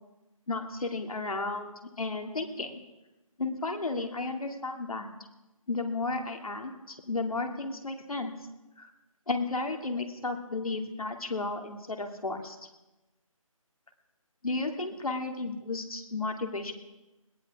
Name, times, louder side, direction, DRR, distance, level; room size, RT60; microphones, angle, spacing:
voice 1, 0.5-2.8 3.4-5.1 5.7-8.4 8.8-8.9 9.3-12.6 14.4-16.7, left 3 dB, 80° left, 4 dB, 2.6 m, -33 dB
21.0 x 17.0 x 3.7 m, 1.0 s
figure-of-eight pair, 165°, 18 cm